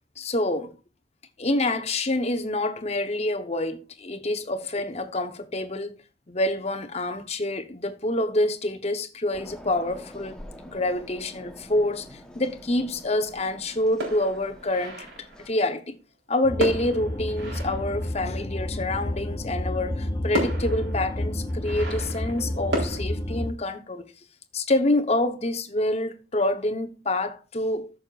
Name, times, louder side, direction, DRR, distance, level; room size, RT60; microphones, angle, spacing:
voice 1, 0.2-0.7 1.4-6.0 6.3-10.3 10.7-16.0 16.3-24.0 24.5-27.9, left 1 dB, 35° left, 0.9 m, -27 dB
sound 1, 9.3-15.5, equal, 5° left, 1.0 m, -46 dB
sound 2, 14.0-15.5 16.6-18.5 19.7-19.8 20.3-23.0, equal, 80° right, 3.9 m, -33 dB
sound 3, 16.4-23.5, left 1 dB, 20° left, 0.6 m, -30 dB
14.0 x 6.5 x 2.4 m
head